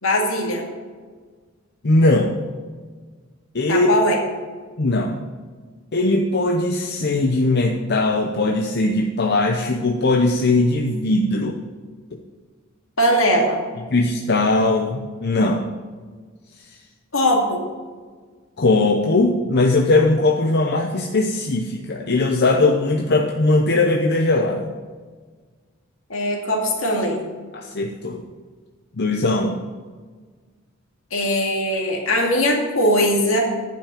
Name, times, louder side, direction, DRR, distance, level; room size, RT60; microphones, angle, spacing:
voice 1, 0.0-0.7 3.7-4.2 13.0-13.6 17.1-17.6 26.1-27.2 31.1-33.4, equal, 75° left, 0 dB, 2.4 m, -20 dB
voice 2, 1.8-2.3 3.5-3.9 4.8-5.1 5.9-11.6 13.9-15.6 18.6-24.7 27.5-28.2 29.0-29.6, left 2 dB, 55° left, 1 dB, 0.8 m, -19 dB
10.5 x 5.7 x 7.4 m, 1.5 s
head